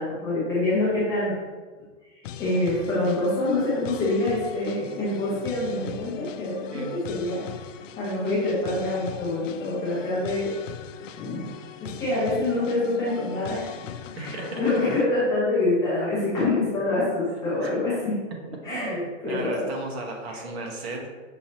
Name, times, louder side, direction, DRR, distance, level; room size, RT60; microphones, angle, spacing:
voice 1, 0.0-1.3 2.4-7.5 8.0-10.5 11.2-11.5 11.8-13.7 14.1-18.1 18.6-19.7 20.3-20.4, left 2 dB, 10° left, -9 dB, 0.4 m, -26 dB
sound 1, 2.2-15.0, left 9 dB, 75° left, 0.5 m, -40 dB
voice 2, 14.2-14.6 17.6-17.7 18.7-21.1, right 3 dB, 55° right, 0 dB, 1.1 m, -35 dB
5.8 x 2.8 x 2.9 m, 1.4 s
hypercardioid pair, 145°, 38 cm